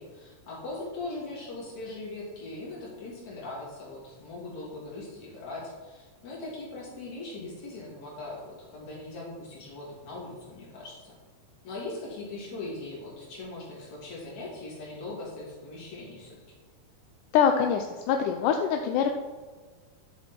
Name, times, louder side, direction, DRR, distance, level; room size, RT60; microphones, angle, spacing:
voice 1, 0.0-11.2 11.6-16.4, left 2 dB, 65° left, -5 dB, 4.2 m, -40 dB
voice 2, 17.3-19.1, left 7 dB, 85° left, 4 dB, 2.2 m, -24 dB
10.5 x 6.9 x 4.5 m, 1.4 s
omnidirectional pair, 3.5 m